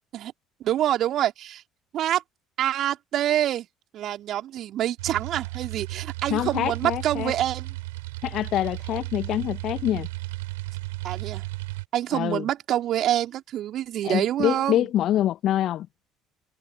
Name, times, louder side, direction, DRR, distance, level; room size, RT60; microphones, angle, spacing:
voice 1, 0.6-1.6 1.9-2.2 2.6-3.7 3.9-7.7 11.0-11.4 11.9-14.9, right 12 dB, 50° right, 3.7 m, -26 dB
sound 1, 5.0-11.9, right 21 dB, 70° right, 3.9 m, -34 dB
voice 2, 6.3-7.3 8.2-10.1 12.1-12.4 14.0-15.9, left 12 dB, 50° left, 0.8 m, -25 dB
figure-of-eight pair, 55°, 0 cm